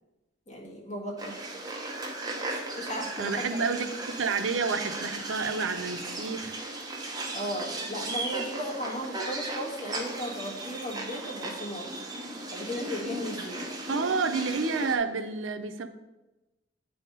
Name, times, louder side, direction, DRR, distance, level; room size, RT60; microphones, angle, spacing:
voice 1, 0.5-1.6 2.4-3.7 7.3-11.9 12.5-13.6, equal, 40° left, -3 dB, 1.8 m, -36 dB
sound 1, 1.2-15.0, right 2 dB, 20° right, 0.9 m, -36 dB
voice 2, 3.2-6.6 13.9-15.9, right 4 dB, 85° right, 9 dB, 0.6 m, -29 dB
9.0 x 3.5 x 5.3 m, 1.0 s
head